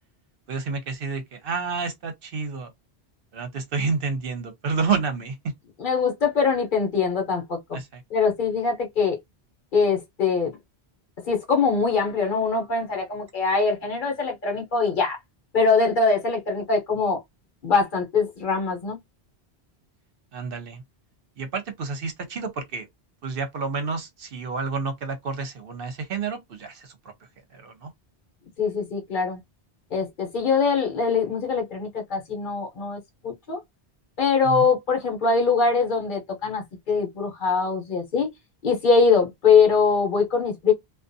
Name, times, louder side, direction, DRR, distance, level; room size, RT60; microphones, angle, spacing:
voice 1, 0.5-2.7 3.3-5.5 7.7-8.0 20.3-20.8 21.4-22.9 23.2-27.1 27.5-27.9 34.4-34.7, right 4 dB, 65° right, 0.8 m, -29 dB
voice 2, 5.8-7.8 8.1-9.2 9.7-10.5 11.3-15.2 15.5-17.2 17.6-19.0 28.6-29.4 29.9-33.6 34.2-38.3 38.6-40.7, left 5 dB, 50° left, 0.9 m, -22 dB
2.5 x 2.3 x 2.5 m
omnidirectional pair, 1.1 m